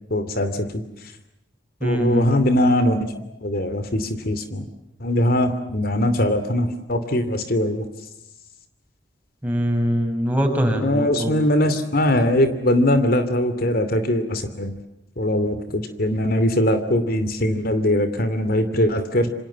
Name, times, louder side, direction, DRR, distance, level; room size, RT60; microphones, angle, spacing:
voice 1, 0.1-0.8 1.8-3.1 3.4-4.7 5.0-7.8 10.8-14.7 15.2-19.3, left 1 dB, 55° left, 10 dB, 2.7 m, -21 dB
voice 2, 1.8-2.3 9.4-11.4, equal, 10° right, 4 dB, 6.4 m, -22 dB
27.5 x 27.0 x 7.4 m, 0.84 s
head